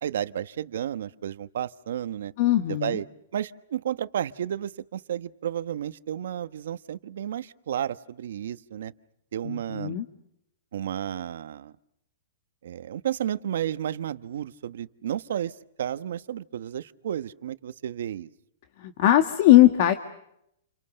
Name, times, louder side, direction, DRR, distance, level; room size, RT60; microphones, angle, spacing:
voice 1, 0.0-2.3 2.7-3.1 3.3-8.9 9.3-10.0 10.7-11.7 12.6-15.5 15.8-18.3, right 10 dB, 70° right, 13 dB, 1.2 m, -32 dB
voice 2, 2.4-3.0 9.4-10.1 18.8-19.9, left 14 dB, 45° left, 8 dB, 1.8 m, -19 dB
29.5 x 29.0 x 6.6 m, 0.78 s
hypercardioid pair, 155°, 0 cm